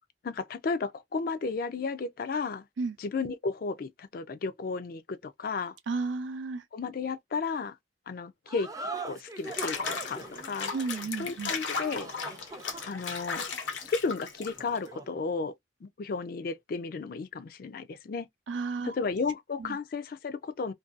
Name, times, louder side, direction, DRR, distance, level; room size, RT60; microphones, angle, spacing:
voice 1, 0.2-2.6 3.0-5.8 6.7-7.8 8.1-8.7 9.0-10.7 11.2-12.1 12.9-13.5 13.9-15.5 15.8-18.3 18.8-20.7, left 4 dB, 50° left, 0.3 m, -33 dB
voice 2, 5.9-6.6 10.7-11.5 18.5-19.0 19.6-19.8, right 4 dB, 85° right, 0.5 m, -33 dB
sound 1, 8.5-15.2, right 2 dB, 20° right, 0.4 m, -42 dB
Water / Bathtub (filling or washing), 9.4-14.9, left 5 dB, 85° left, 0.8 m, -36 dB
2.6 x 2.2 x 2.4 m
head